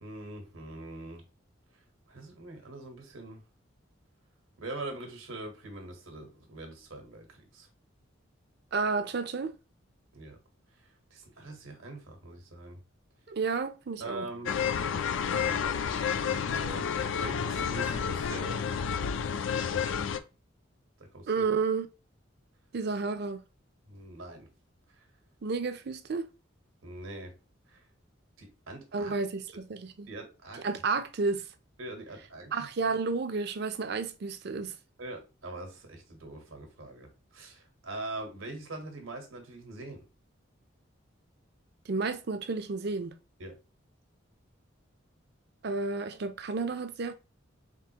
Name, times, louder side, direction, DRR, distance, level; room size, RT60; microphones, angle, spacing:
voice 1, 0.0-1.2 2.1-3.4 4.6-7.7 10.1-10.4 10.8-12.8 14.0-14.6 15.2-18.7 21.0-21.4 23.9-24.5 24.9-25.0 26.8-27.3 27.7-27.8 28.4-29.1 30.1-30.7 31.8-33.0 35.0-40.1 43.4-43.6, right 2 dB, 85° right, 1.3 m, -43 dB
voice 2, 8.7-9.5 13.3-14.3 21.3-21.9 22.7-23.4 25.4-26.3 28.9-30.1 30.6-31.4 32.5-34.8 41.9-43.1 45.6-47.1, right 4 dB, 55° right, 0.5 m, -31 dB
sound 1, 14.5-20.2, left 7 dB, 70° left, 0.4 m, -30 dB
4.0 x 3.6 x 2.9 m
head